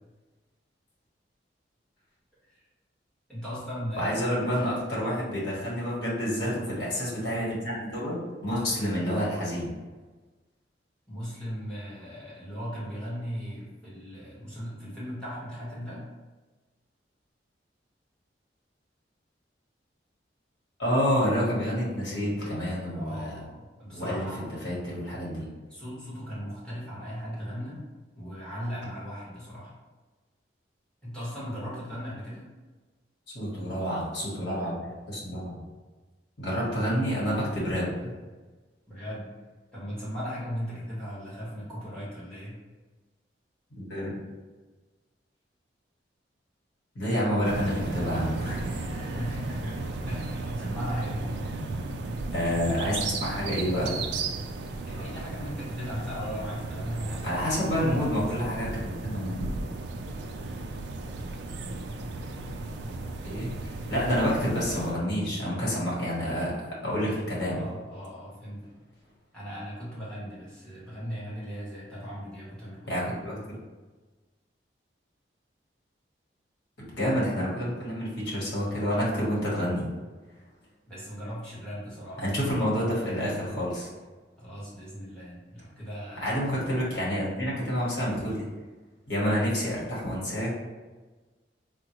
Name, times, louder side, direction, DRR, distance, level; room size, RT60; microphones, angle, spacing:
voice 1, 3.3-4.3 4.9-5.1 11.1-16.0 22.9-24.5 25.7-27.8 28.1-29.7 31.0-32.5 38.9-39.3 39.7-42.6 48.9-49.7 50.1-51.3 54.8-57.9 67.4-68.8 69.3-73.0 73.2-73.4 80.9-82.2 84.4-86.3, equal, 5° left, -9 dB, 1.1 m, -38 dB
voice 2, 4.0-9.7 20.8-23.4 23.9-24.3 24.6-25.5 33.3-34.8 35.1-35.6 36.4-38.1 43.8-44.2 46.9-48.9 52.3-54.1 57.2-59.5 63.2-66.5 66.8-67.6 72.9-73.6 76.9-79.9 82.2-83.9 86.2-88.4 89.1-90.6, equal, 70° left, -6 dB, 1.1 m, -28 dB
sound 1, 47.4-64.9, right 3 dB, 70° right, 0.3 m, -35 dB
3.7 x 2.1 x 2.9 m, 1.3 s
head